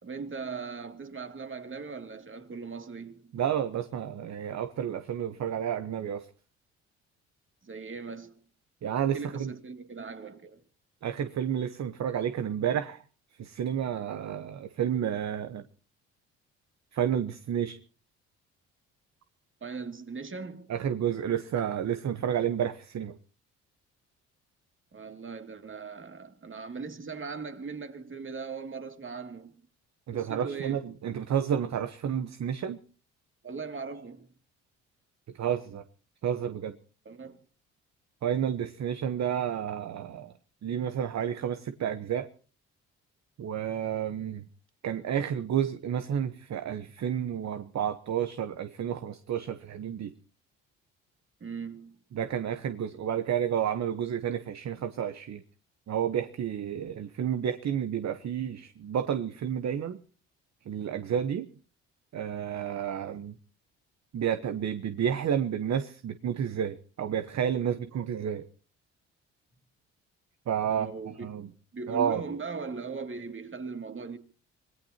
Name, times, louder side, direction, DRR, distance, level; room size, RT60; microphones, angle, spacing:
voice 1, 0.0-3.4 7.6-8.4 9.1-10.6 19.6-20.7 24.9-29.6 30.1-30.9 33.4-34.3 37.0-37.4 51.4-52.0 70.7-71.4 71.7-74.2, right 4 dB, 35° right, 2.6 m, -39 dB
voice 2, 3.3-6.3 8.8-9.5 11.0-13.0 13.4-15.6 16.9-17.8 20.7-23.1 30.1-32.8 35.4-35.8 36.2-36.8 38.2-40.3 40.6-42.3 43.4-44.4 44.8-50.1 52.1-55.4 55.9-60.0 60.7-61.5 62.1-63.4 64.1-68.4 70.5-70.9 71.2-71.5 71.9-72.2, right 9 dB, 50° right, 1.1 m, -30 dB
26.0 x 18.5 x 2.9 m
hypercardioid pair, 55°, 34 cm